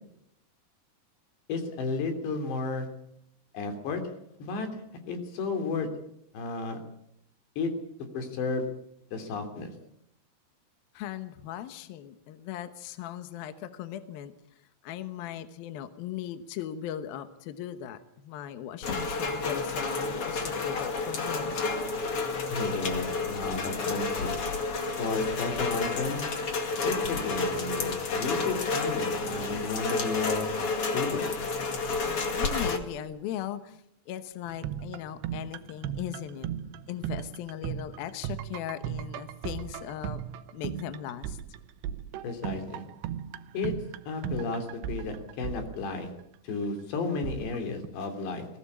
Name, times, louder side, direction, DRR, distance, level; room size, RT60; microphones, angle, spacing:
voice 1, 1.5-2.9 3.5-4.0 4.4-4.8 5.1-5.9 6.3-6.8 7.6-7.7 8.1-8.7 9.1-9.7 22.5-24.4 25.0-26.2 26.8-30.5 30.9-31.3 42.2-42.8 43.5-43.7 44.1-46.1 46.4-48.5, left 4 dB, 85° left, 6 dB, 5.2 m, -33 dB
voice 2, 10.9-14.3 14.8-21.6 32.0-36.5 36.9-40.2 40.5-41.4, left 11 dB, 70° left, 10 dB, 2.7 m, -38 dB
Rain, 18.8-32.8, left 3 dB, 40° left, 2.5 m, -30 dB
sound 1, 34.4-46.4 47.2-47.9, right 10 dB, 85° right, 3.1 m, -37 dB
21.0 x 18.0 x 8.6 m, 0.79 s
omnidirectional pair, 4.8 m